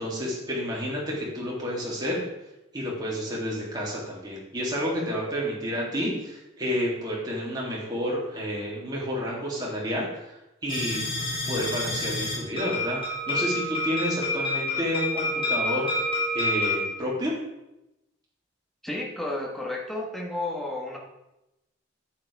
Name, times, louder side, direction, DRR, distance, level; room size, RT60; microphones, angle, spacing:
voice 1, 0.0-2.2 2.7-11.0 11.5-16.1 16.3-17.4, equal, 20° right, -5 dB, 3.0 m, -30 dB
sound 1, 10.7-16.8, left 2 dB, 25° left, 3.1 m, -28 dB
voice 2, 18.8-21.0, left 2 dB, ahead, -1 dB, 1.5 m, -32 dB
10.0 x 8.8 x 3.6 m, 0.91 s
head